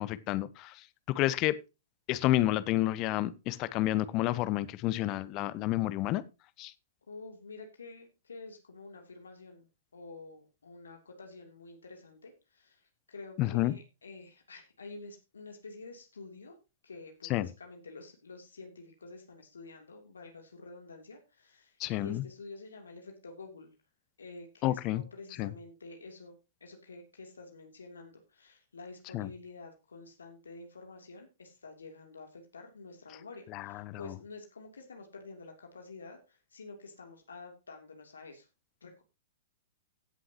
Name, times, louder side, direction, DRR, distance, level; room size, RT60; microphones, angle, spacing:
voice 1, 0.0-1.6 2.1-6.2 6.6-6.7 13.4-13.7 17.3-17.5 21.8-22.2 24.6-25.0 25.4-25.5 29.1-29.3 33.5-34.1, left 15 dB, 35° left, 1.0 m, -30 dB
voice 2, 7.1-16.6 16.8-23.7 24.2-26.3 26.6-38.5 38.8-39.0, left 3 dB, 70° left, 3.2 m, -49 dB
17.0 x 7.7 x 3.0 m
figure-of-eight pair, 105°, 0 cm